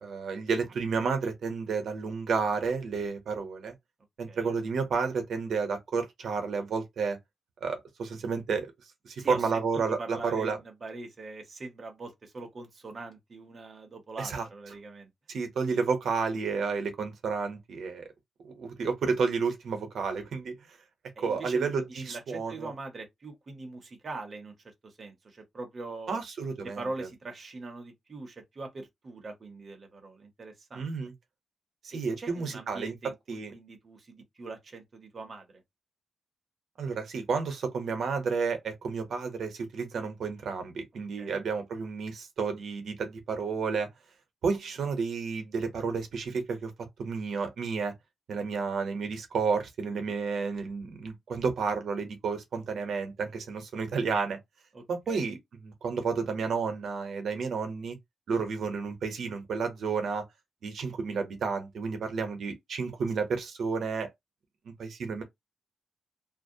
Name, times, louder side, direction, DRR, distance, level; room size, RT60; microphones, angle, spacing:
voice 1, 0.0-3.7 4.2-7.2 7.6-8.7 9.0-10.6 14.2-14.5 15.3-18.0 18.4-20.6 21.2-22.7 26.1-27.1 30.7-31.1 31.8-32.9 33.3-33.5 36.8-43.9 44.4-46.7 47.0-47.9 48.3-54.4 54.9-58.0 58.3-60.2 60.6-64.1 64.6-65.2, right 5 dB, 65° right, 0.8 m, -31 dB
voice 2, 9.2-15.1 21.2-24.5 24.8-26.2 26.6-30.9 31.9-35.6 41.2-41.4 54.7-55.2, right 2 dB, 35° right, 0.8 m, -42 dB
2.5 x 2.1 x 2.7 m
wide cardioid pair, 145°, 0 cm